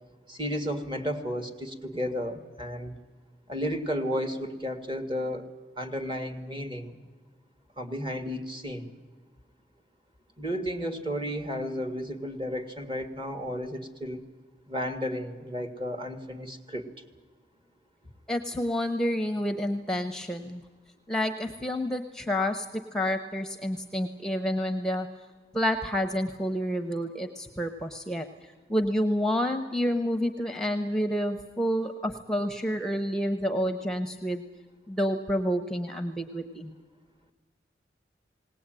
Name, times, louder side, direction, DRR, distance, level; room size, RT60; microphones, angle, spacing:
voice 1, 0.3-2.9 3.5-5.5 5.8-7.0 7.8-8.9 10.4-14.2 14.7-16.9, equal, 30° right, 7 dB, 2.0 m, -33 dB
voice 2, 18.3-20.6 21.1-25.1 25.5-34.4 34.9-36.7, equal, 5° left, 7 dB, 0.9 m, -29 dB
19.5 x 18.5 x 9.0 m, 1.3 s
head